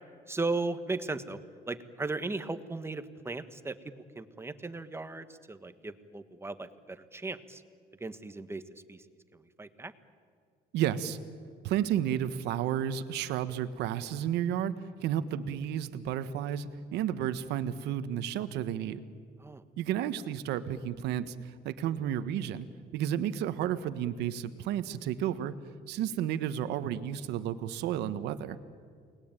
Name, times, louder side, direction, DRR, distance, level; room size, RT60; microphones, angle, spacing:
voice 1, 0.3-1.4 1.7-3.8 4.1-7.6 8.0-8.6 8.9-9.0 9.3-9.9 19.4-19.6, right 3 dB, 15° right, 10 dB, 1.4 m, -36 dB
voice 2, 10.7-11.2 11.6-14.7 15.0-19.0 19.8-22.7 22.9-25.5 25.9-28.6, right 10 dB, 85° right, 12 dB, 1.3 m, -32 dB
29.5 x 20.5 x 9.0 m, 2.1 s
cardioid pair, 110°, 17 cm